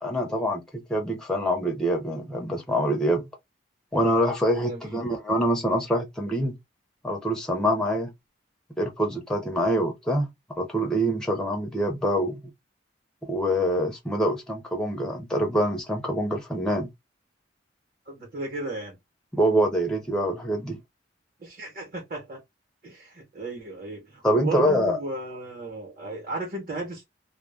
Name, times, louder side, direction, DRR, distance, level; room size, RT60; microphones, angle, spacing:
voice 1, 0.0-3.3 3.9-6.6 7.0-8.1 8.8-10.3 10.6-12.4 13.2-16.9 19.3-20.8 24.2-25.0, equal, 5° left, 0.4 m, -25 dB
voice 2, 4.6-5.1 18.1-19.0 21.4-22.4 22.8-27.0, right 2 dB, 45° right, 0.9 m, -35 dB
2.2 x 2.1 x 3.2 m
head